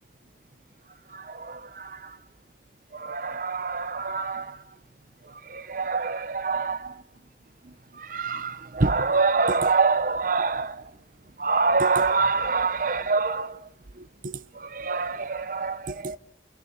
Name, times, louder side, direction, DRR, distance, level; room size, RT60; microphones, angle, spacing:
voice 1, 2.9-4.5 5.5-6.8 8.1-10.7 11.4-13.5 14.7-16.2, right 4 dB, 50° right, 0.8 m, -25 dB
29.0 x 11.0 x 8.2 m
head